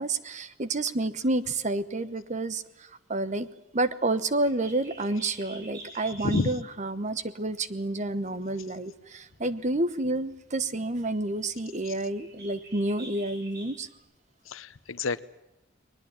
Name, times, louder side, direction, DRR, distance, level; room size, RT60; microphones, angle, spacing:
voice 1, 0.0-2.6 3.1-3.5 3.7-13.9, right 2 dB, 35° right, 14 dB, 1.1 m, -29 dB
Bird, 4.4-14.0, right 2 dB, 55° right, 6.6 m, -49 dB
voice 2, 14.5-15.2, left 3 dB, 85° left, 16 dB, 0.9 m, -29 dB
21.5 x 20.0 x 8.9 m, 0.90 s
head